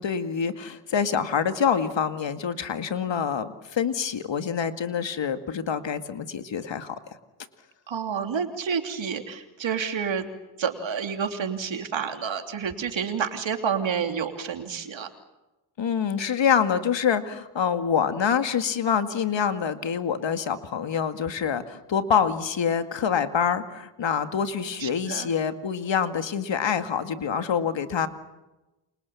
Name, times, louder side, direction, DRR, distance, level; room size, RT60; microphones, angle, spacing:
voice 1, 0.0-7.0 15.8-28.1, left 7 dB, 60° left, 9 dB, 2.2 m, -26 dB
voice 2, 7.9-10.3 10.6-15.1 24.8-25.3, right 6 dB, 65° right, 5 dB, 3.2 m, -29 dB
29.5 x 26.0 x 7.2 m, 1.0 s
supercardioid pair, 50°, 49 cm